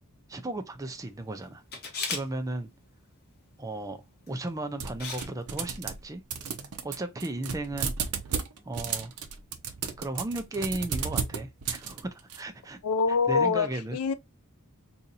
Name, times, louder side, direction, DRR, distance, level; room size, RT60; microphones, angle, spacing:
voice 1, 0.3-1.6 2.1-2.7 3.6-6.2 6.8-7.9 8.6-9.1 10.0-12.8 13.3-14.0, right 2 dB, 15° right, 0.4 m, -35 dB
Camera, 1.7-2.2 4.3-4.5 5.0-5.3 5.6-5.7, left 4 dB, 45° left, 1.0 m, -34 dB
sound 1, 4.8-6.1 6.3-12.4, right 6 dB, 80° right, 0.6 m, -34 dB
voice 2, 12.8-14.1, left 5 dB, 80° left, 0.5 m, -25 dB
2.8 x 2.6 x 3.9 m
head